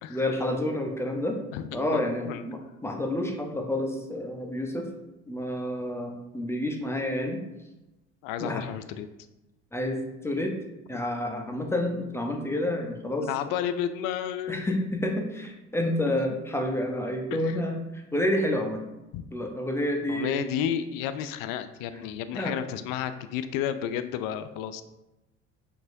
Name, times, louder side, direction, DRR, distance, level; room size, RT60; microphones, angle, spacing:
voice 1, 0.1-1.4 1.7-4.9 5.3-7.4 8.4-8.6 9.7-10.5 10.9-13.3 14.5-17.8 18.1-18.8 19.3-20.4 22.3-22.6, left 1 dB, 5° left, 3 dB, 0.8 m, -29 dB
voice 2, 1.5-2.5 8.2-9.1 13.2-14.8 17.4-17.6 19.1-19.2 20.1-24.8, left 9 dB, 70° left, 11 dB, 0.5 m, -32 dB
5.9 x 2.9 x 2.6 m, 0.98 s
hypercardioid pair, 60°, 35 cm